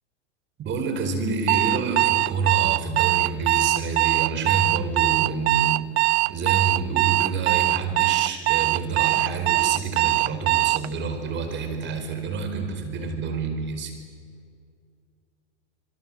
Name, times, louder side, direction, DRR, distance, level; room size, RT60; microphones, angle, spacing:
voice 1, 0.6-5.8 6.3-13.9, right 4 dB, 30° right, 7 dB, 4.7 m, -28 dB
Alarm, 1.5-10.9, right 18 dB, 65° right, 0.6 m, -21 dB
26.5 x 22.0 x 7.9 m, 2.1 s
hypercardioid pair, 120°, 35 cm